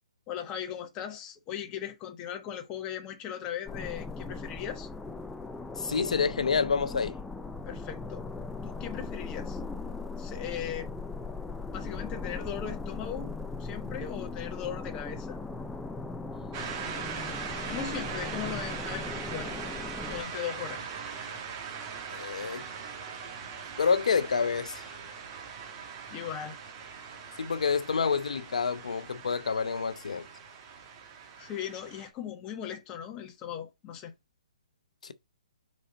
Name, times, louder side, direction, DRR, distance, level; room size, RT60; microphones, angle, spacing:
voice 1, 0.3-4.9 7.6-8.3 8.6-9.6 10.2-10.9 11.7-15.4 17.7-19.5 20.0-20.8 26.1-26.6 31.4-34.1, left 9 dB, 25° left, 1.2 m, -38 dB
sound 1, 3.7-20.2, left 3 dB, 5° left, 0.4 m, -39 dB
voice 2, 5.8-7.2 22.1-22.6 23.8-24.9 27.4-30.3 35.0-35.1, left 5 dB, 80° left, 0.8 m, -28 dB
sound 2, 16.5-32.1, right 6 dB, 30° right, 1.4 m, -40 dB
4.9 x 4.3 x 5.1 m
hypercardioid pair, 150°, 4 cm